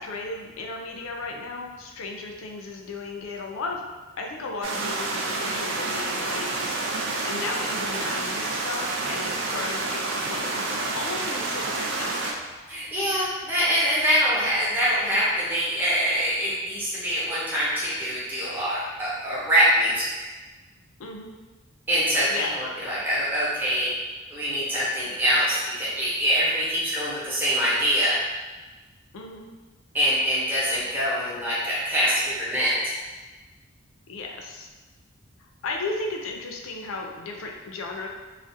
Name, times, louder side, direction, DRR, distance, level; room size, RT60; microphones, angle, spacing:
voice 1, 0.0-3.8 4.2-7.0 7.2-12.2 21.0-21.3 22.3-22.6 29.1-29.5 34.1-34.7 35.4-38.1, left 3 dB, 75° left, 1 dB, 0.4 m, -35 dB
sound 1, 4.6-12.3, right 2 dB, 65° right, 0.3 m, -29 dB
voice 2, 12.7-20.1 21.9-23.9 24.3-28.2 29.9-32.9, equal, 10° right, -9 dB, 0.5 m, -24 dB
2.4 x 2.0 x 2.6 m, 1.2 s
head